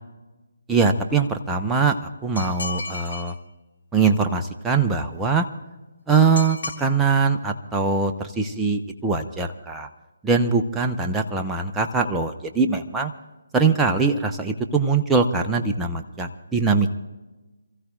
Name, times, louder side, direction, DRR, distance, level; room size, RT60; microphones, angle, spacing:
voice 1, 0.7-3.3 3.9-5.5 6.1-9.9 10.2-13.1 13.5-16.9, right 4 dB, 10° right, 3 dB, 0.8 m, -22 dB
sound 1, 2.4-3.3 6.4-6.8, left 3 dB, 60° left, 4.1 m, -33 dB
29.0 x 15.0 x 2.5 m, 1.1 s
figure-of-eight pair, 150°, 0 cm